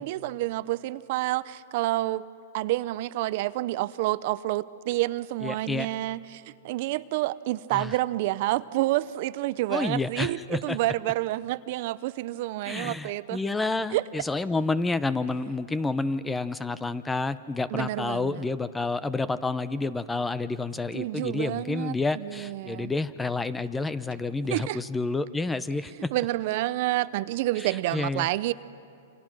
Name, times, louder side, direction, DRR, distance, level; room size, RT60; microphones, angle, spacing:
voice 1, 0.0-2.2 2.5-13.4 13.9-14.0 17.7-18.4 20.9-22.9 24.5-24.8 26.1-28.5, right 17 dB, 50° right, 16 dB, 0.5 m, -29 dB
voice 2, 5.4-5.9 7.7-7.9 9.7-10.8 12.6-26.1 27.6-28.3, left 3 dB, 10° left, 15 dB, 0.6 m, -29 dB
28.0 x 26.0 x 6.1 m, 2.6 s
hypercardioid pair, 145°, 0 cm